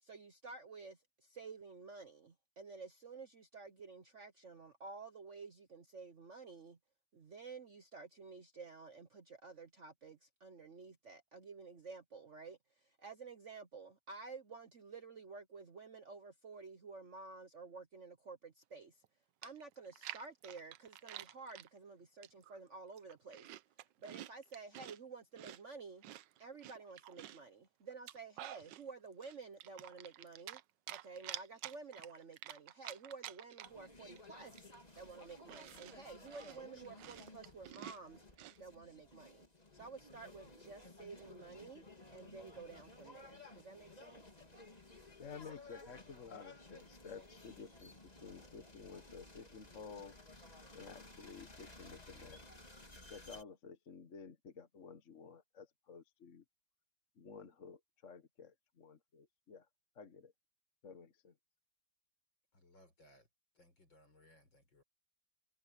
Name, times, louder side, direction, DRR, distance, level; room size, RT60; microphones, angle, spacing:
voice 1, 0.0-6.8 7.1-19.0 19.4-23.5 24.0-26.0 26.4-30.6 30.9-34.6 35.0-38.2 38.6-39.5 39.7-41.8 42.1-44.2, right 4 dB, 45° right, 1.1 m, -52 dB
Chewing mastication, 19.0-19.1 19.4-21.7 22.2-22.6 22.9-25.0 25.4-27.5 27.9-28.8 29.2-30.6 30.9-33.9 34.2-34.3 34.5-38.6, right 13 dB, 70° right, 1.3 m, -50 dB
sound 1, 33.6-53.4, left 2 dB, 20° left, 2.5 m, -57 dB
voice 2, 45.2-50.2 50.7-52.4 53.1-56.4 57.2-59.7 59.9-60.3 60.8-61.3, left 5 dB, 40° left, 1.6 m, -53 dB
voice 3, 62.5-63.3 63.5-64.8, left 1 dB, 65° left, 6.9 m, -65 dB
omnidirectional pair, 2.2 m